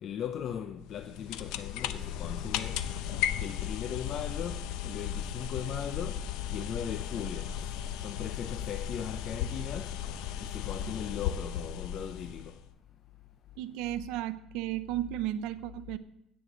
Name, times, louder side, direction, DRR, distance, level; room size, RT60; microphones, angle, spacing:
voice 1, 0.0-2.8 3.4-6.2 6.5-7.7 8.0-9.9 10.4-12.6, left 8 dB, 45° left, 0.5 m, -38 dB
sound 1, 0.8-12.6, left 9 dB, 85° left, 0.6 m, -36 dB
voice 2, 13.6-16.0, right 13 dB, 85° right, 0.6 m, -34 dB
16.5 x 8.0 x 3.9 m
cardioid pair, 155°, 0 cm